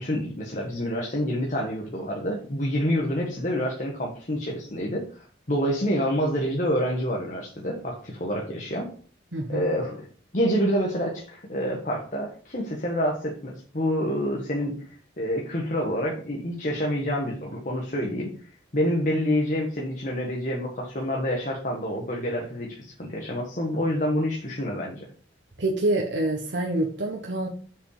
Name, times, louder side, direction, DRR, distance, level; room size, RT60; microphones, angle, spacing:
voice 1, 0.0-8.9 9.5-10.1 10.3-14.8 15.2-25.1, equal, 40° left, -1 dB, 1.6 m, -27 dB
voice 2, 9.3-9.7 25.6-27.5, right 2 dB, 65° right, 0 dB, 1.3 m, -26 dB
7.3 x 6.4 x 5.0 m, 0.42 s
head